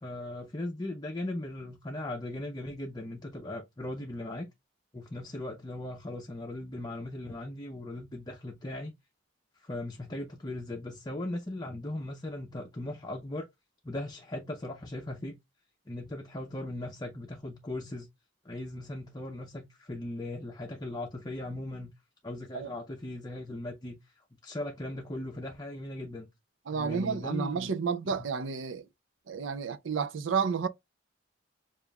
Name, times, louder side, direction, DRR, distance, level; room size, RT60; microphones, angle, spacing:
voice 1, 0.0-4.5 4.9-8.9 9.6-13.5 13.8-15.3 15.9-18.1 18.4-21.9 22.2-24.1 24.4-26.3 26.7-27.7 28.0-28.3, left 1 dB, 20° left, 0.6 m, -38 dB
voice 2, 26.7-28.8 29.3-30.7, right 6 dB, 85° right, 0.5 m, -31 dB
7.0 x 2.5 x 2.3 m
head